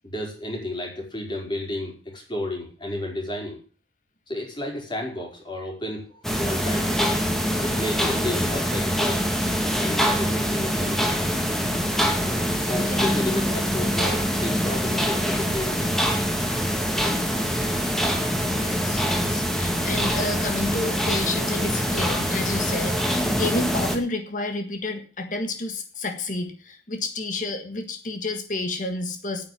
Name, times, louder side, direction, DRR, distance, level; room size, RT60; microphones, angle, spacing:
voice 1, 0.0-3.6 4.3-7.1 7.6-9.3 9.8-11.2 12.6-15.8, left 1 dB, 25° left, 0 dB, 5.0 m, -32 dB
sound 1, 6.2-24.0, equal, ahead, 1.9 m, -24 dB
voice 2, 12.0-13.2 18.5-29.5, left 2 dB, 45° left, 6 dB, 1.7 m, -31 dB
9.4 x 8.9 x 9.3 m, 0.39 s
head